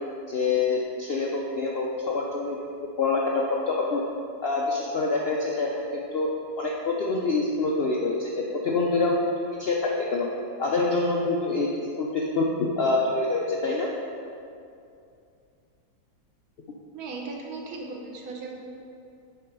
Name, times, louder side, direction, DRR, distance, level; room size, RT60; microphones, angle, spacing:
voice 1, 0.3-2.6 3.0-4.0 4.4-6.3 6.6-9.3 9.6-10.3 10.6-12.5 12.8-13.9, left 3 dB, 90° left, -2 dB, 0.5 m, -26 dB
voice 2, 16.9-18.7, right 3 dB, 65° right, 0 dB, 1.3 m, -37 dB
6.8 x 4.9 x 4.6 m, 2.5 s
omnidirectional pair, 1.8 m